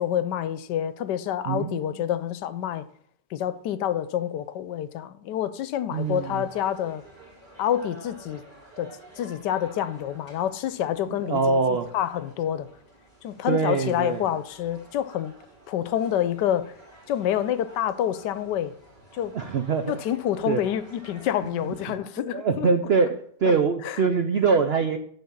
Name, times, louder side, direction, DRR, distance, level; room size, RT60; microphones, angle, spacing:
voice 1, 0.0-2.8 3.3-7.0 7.6-8.4 8.8-8.9 9.2-12.7 13.2-15.3 15.7-16.7 17.1-18.7 19.1-19.3 19.9-22.7 23.8-24.0, left 10 dB, 80° left, 1.2 m, -27 dB
voice 2, 1.5-2.0 5.9-6.4 11.1-11.9 13.5-14.3 19.3-20.0 20.5-20.6 21.6-25.0, right 5 dB, 60° right, 0.6 m, -24 dB
sound 1, 5.9-22.0, right 2 dB, 25° right, 3.3 m, -51 dB
10.5 x 3.9 x 7.1 m
omnidirectional pair, 1.9 m